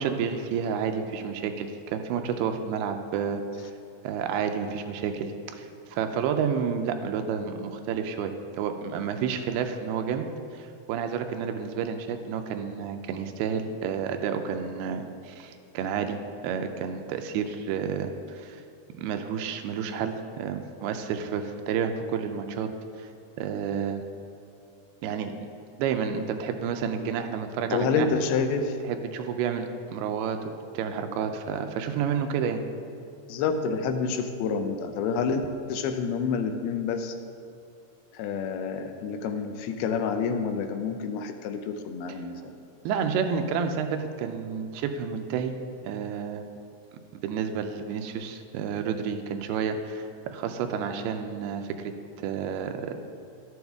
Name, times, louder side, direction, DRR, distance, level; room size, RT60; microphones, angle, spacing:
voice 1, 0.0-3.7 4.0-10.3 10.5-16.2 16.4-18.6 19.0-22.7 23.0-23.1 23.4-24.0 25.0-25.3 25.8-28.1 28.8-32.6 42.1-42.2 42.8-45.5 45.8-46.5 47.2-50.1 50.3-53.0, right 7 dB, 85° right, 7 dB, 2.6 m, -30 dB
voice 2, 27.7-28.8 33.3-37.2 38.1-42.4, left 5 dB, 80° left, 7 dB, 2.5 m, -28 dB
12.5 x 7.9 x 3.5 m, 2.5 s
omnidirectional pair, 4.5 m